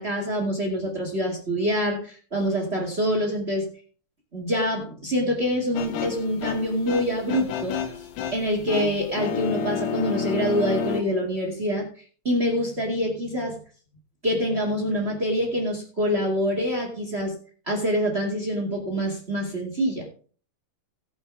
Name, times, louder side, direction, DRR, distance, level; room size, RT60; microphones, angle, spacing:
voice 1, 0.0-3.7 4.3-7.8 8.3-11.9 12.2-13.6 14.2-17.4 17.6-20.1, equal, 80° right, 0 dB, 0.5 m, -25 dB
sound 1, 5.8-11.0, left 8 dB, 85° left, 4.1 m, -30 dB
17.0 x 8.4 x 3.5 m, 0.40 s
omnidirectional pair, 5.9 m